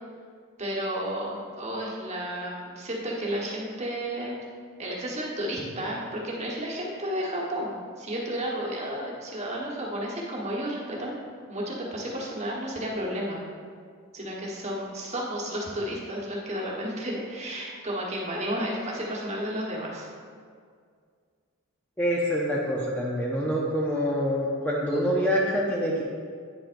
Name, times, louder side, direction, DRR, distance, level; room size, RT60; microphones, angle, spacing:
voice 1, 0.6-4.4 4.8-11.2 11.5-13.4 14.1-20.1, equal, 30° right, -4 dB, 1.3 m, -32 dB
voice 2, 22.0-26.0, equal, 10° left, -4 dB, 0.6 m, -26 dB
8.9 x 7.3 x 2.6 m, 2.1 s
head